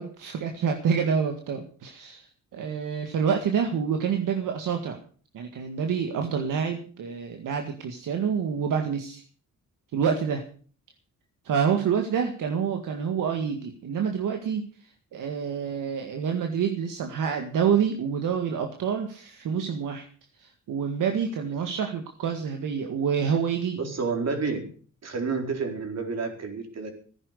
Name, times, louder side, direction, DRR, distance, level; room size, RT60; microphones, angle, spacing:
voice 1, 0.0-2.3 2.5-5.0 5.3-9.2 9.9-10.4 11.4-14.6 15.1-20.1 20.4-23.8, right 7 dB, 75° right, 4 dB, 1.9 m, -27 dB
voice 2, 23.8-24.7 25.0-26.9, right 4 dB, 55° right, 4 dB, 4.3 m, -30 dB
15.0 x 10.5 x 6.7 m, 0.43 s
cardioid pair, 80°, 32 cm